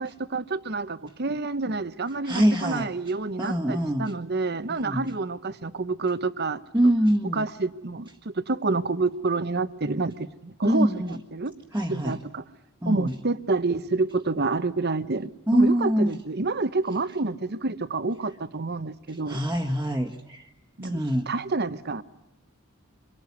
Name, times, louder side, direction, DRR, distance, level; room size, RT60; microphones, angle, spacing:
voice 1, 0.0-6.6 7.3-11.5 11.9-12.4 12.8-19.4 20.8-21.0 21.3-22.0, right 3 dB, 50° right, 1.0 m, -28 dB
voice 2, 2.2-2.9 3.4-4.1 4.7-5.1 6.7-7.5 10.6-11.2 11.7-12.2 12.8-13.1 15.5-16.2 19.3-20.5 20.8-21.3, right 1 dB, 10° right, 1.6 m, -24 dB
25.5 x 23.0 x 9.6 m
head